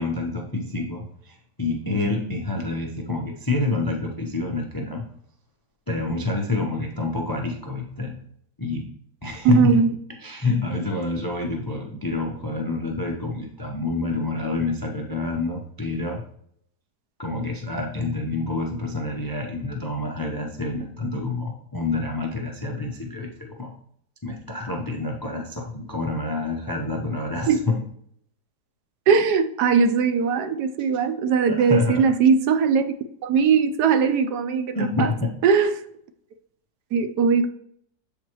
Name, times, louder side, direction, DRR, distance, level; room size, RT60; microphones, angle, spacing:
voice 1, 0.0-5.0 5.9-8.1 8.6-8.9 9.2-9.9 10.2-16.2 17.2-23.7 24.2-27.8 31.5-32.0 34.7-35.3, left 3 dB, 35° left, 1 dB, 0.3 m, -27 dB
voice 2, 9.4-9.9 27.5-27.6 29.1-32.9 33.2-35.1 35.4-35.8 36.9-37.5, right 6 dB, 75° right, 9 dB, 1.1 m, -20 dB
7.4 x 4.6 x 3.0 m, 0.67 s
omnidirectional pair, 1.9 m